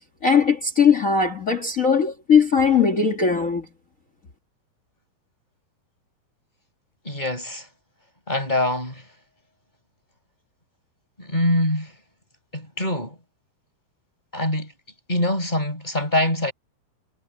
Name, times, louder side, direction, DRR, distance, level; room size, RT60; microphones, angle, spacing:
voice 1, 0.2-3.7, left 6 dB, 75° left, 0.7 m, -19 dB
voice 2, 7.0-7.7 8.3-9.0 11.2-11.9 12.5-13.2 14.3-14.7 15.1-16.5, left 1 dB, 10° left, 5.4 m, -24 dB
omnidirectional pair, 4.5 m